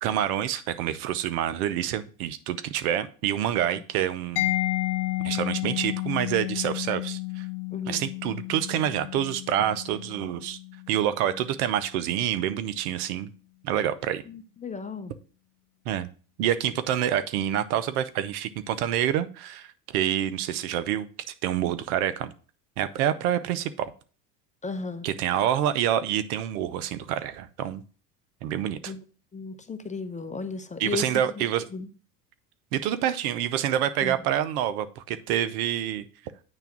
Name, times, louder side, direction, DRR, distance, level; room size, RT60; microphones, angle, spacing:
voice 1, 0.0-4.6 5.2-7.5 7.9-10.6 10.9-13.3 13.6-14.2 15.9-16.1 16.4-21.1 21.4-22.3 22.8-23.9 25.0-27.8 28.4-28.9 30.8-31.6 32.7-36.0, right 10 dB, 70° right, 13 dB, 0.8 m, -27 dB
Mallet percussion, 4.4-11.9, left 20 dB, 75° left, 0.9 m, -32 dB
voice 2, 7.7-8.0 14.3-15.1 24.6-25.1 28.8-29.0 29.3-31.4 31.7-31.9 34.0-34.2, left 4 dB, 15° left, 10 dB, 0.8 m, -35 dB
8.9 x 3.5 x 5.9 m, 0.38 s
hypercardioid pair, 85°, 46 cm